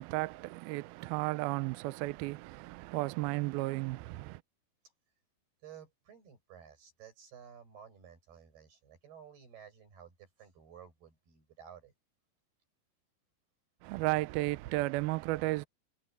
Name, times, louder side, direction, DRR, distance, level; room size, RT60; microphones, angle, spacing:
voice 1, 0.0-4.4 13.8-15.7, right 20 dB, 85° right, 2.2 m, -34 dB
voice 2, 5.6-11.9, right 8 dB, 65° right, 8.7 m, -54 dB
omnidirectional pair, 5.0 m